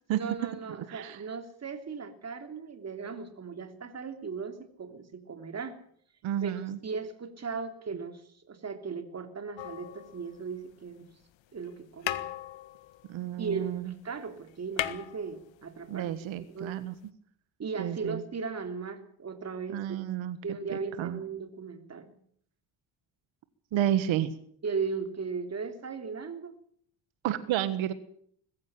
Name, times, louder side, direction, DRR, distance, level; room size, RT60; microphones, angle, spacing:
voice 1, 0.1-5.8 6.4-8.2 8.5-11.0 11.5-12.3 13.4-16.1 16.5-16.8 17.6-19.8 20.4-22.1 24.6-26.5, right 5 dB, 35° right, 7 dB, 3.2 m, -37 dB
voice 2, 0.9-1.2 6.2-6.8 13.1-13.9 15.9-16.9 17.8-18.2 19.7-20.4 21.0-21.2 23.7-24.3 27.2-27.9, right 11 dB, 85° right, 12 dB, 1.6 m, -30 dB
sound 1, 9.6-10.7 11.6-11.7 12.0-13.9 14.2-14.3 14.5-15.9 17.1-17.2, left 13 dB, 75° left, 1.6 m, -37 dB
21.5 x 15.0 x 8.9 m, 0.64 s
cardioid pair, 125°, 45 cm